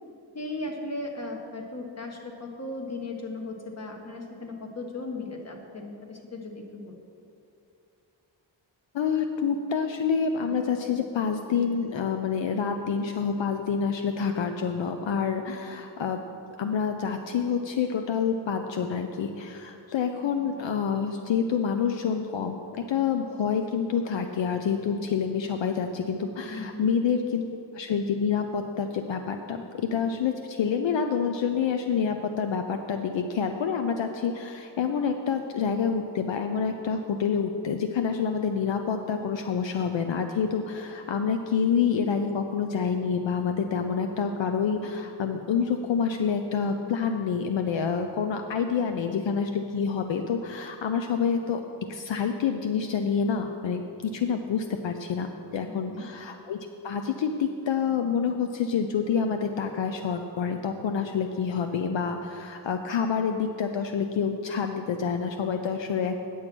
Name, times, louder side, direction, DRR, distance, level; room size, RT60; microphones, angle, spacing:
voice 1, 0.3-7.0 26.4-26.8 55.9-56.1, left 2 dB, 35° left, 2 dB, 1.4 m, -37 dB
voice 2, 8.9-16.2 16.6-22.6 22.9-27.4 27.7-51.6 51.9-66.2, left 6 dB, 75° left, 6 dB, 0.6 m, -27 dB
9.4 x 7.4 x 6.1 m, 2.7 s
wide cardioid pair, 110°, 45 cm